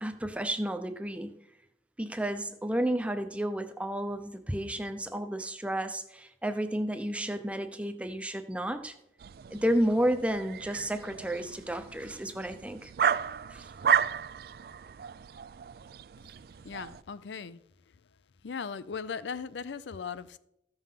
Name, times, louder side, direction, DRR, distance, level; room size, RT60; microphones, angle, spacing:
voice 1, 0.0-1.4 2.0-8.9 9.5-12.9 13.5-13.7, right 1 dB, 5° right, 0.6 m, -31 dB
sound 1, 9.2-17.0, right 8 dB, 55° right, 0.3 m, -33 dB
voice 2, 16.6-17.6 18.4-20.4, left 6 dB, 90° left, 0.5 m, -38 dB
14.5 x 5.6 x 5.7 m
head